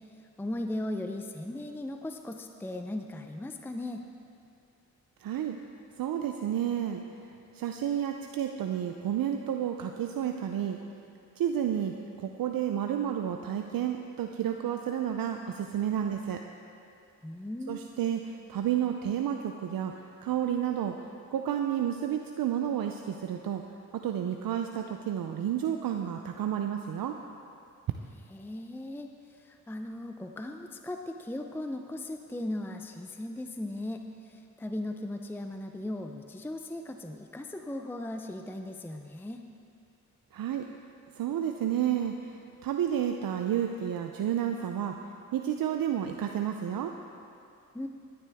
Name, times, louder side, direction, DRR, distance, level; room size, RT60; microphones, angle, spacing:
voice 1, 0.2-4.0 17.2-17.9 28.3-39.4 47.7-47.9, left 1 dB, 5° left, 5 dB, 0.6 m, -37 dB
voice 2, 5.2-5.6 6.0-7.0 7.5-10.8 11.4-16.4 17.7-23.6 23.9-27.2 40.3-40.7 41.2-45.0 45.3-46.9, right 9 dB, 80° right, 5 dB, 0.6 m, -31 dB
16.0 x 10.5 x 3.5 m, 2.6 s
cardioid pair, 60°, 34 cm